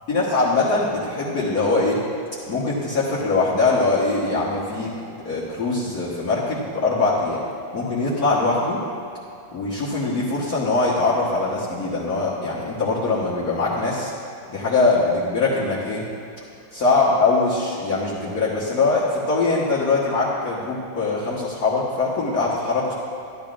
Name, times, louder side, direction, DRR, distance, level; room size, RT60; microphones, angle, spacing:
voice 1, 0.1-2.0 2.5-4.9 5.3-7.4 7.7-8.8 9.5-14.1 14.5-16.1 16.7-22.9, left 3 dB, 55° left, -8 dB, 1.7 m, -22 dB
12.5 x 11.5 x 2.5 m, 2.6 s
omnidirectional pair, 2.0 m